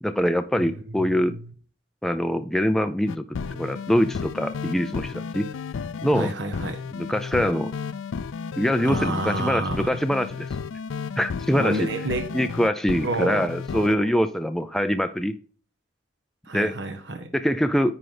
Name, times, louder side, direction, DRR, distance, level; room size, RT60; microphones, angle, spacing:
voice 1, 0.0-1.4 2.0-3.3 3.5-5.5 6.0-6.3 6.9-7.7 8.6-10.6 11.2-11.9 12.3-15.3 16.5-16.7 17.3-18.0, equal, ahead, 8 dB, 0.4 m, -24 dB
voice 2, 0.6-1.4 6.1-6.8 8.8-10.0 11.5-12.3 13.0-13.4 13.7-13.9 16.5-17.3, right 2 dB, 60° right, 6 dB, 1.1 m, -30 dB
sound 1, 3.1-13.9, left 5 dB, 85° left, 0.4 m, -33 dB
10.0 x 4.5 x 3.9 m, 0.41 s
head